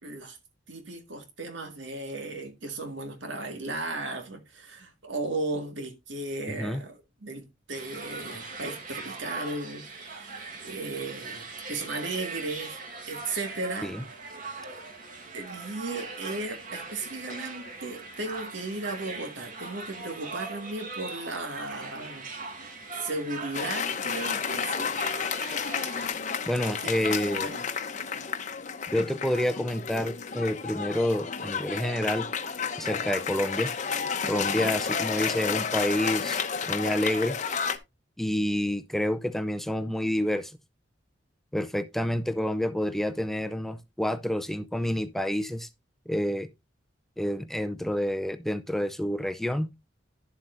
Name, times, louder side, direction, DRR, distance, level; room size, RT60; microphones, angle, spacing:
voice 1, 0.0-0.4 0.7-12.8 13.1-13.9 14.7-14.8 15.3-22.3 22.9-24.9 26.8-26.9 27.2-27.7 34.3-34.7, right 2 dB, 80° right, 1.9 m, -36 dB
sound 1, 7.7-26.1, right 3 dB, 45° right, 1.7 m, -40 dB
Cheering / Applause, 23.5-37.8, left 6 dB, 40° left, 0.8 m, -31 dB
voice 2, 26.5-27.5 28.9-32.3 32.8-33.7 34.3-36.4 36.7-37.4 38.2-40.5 41.5-45.7 46.1-46.5 47.2-49.7, left 1 dB, ahead, 0.4 m, -28 dB
11.5 x 7.4 x 2.6 m
head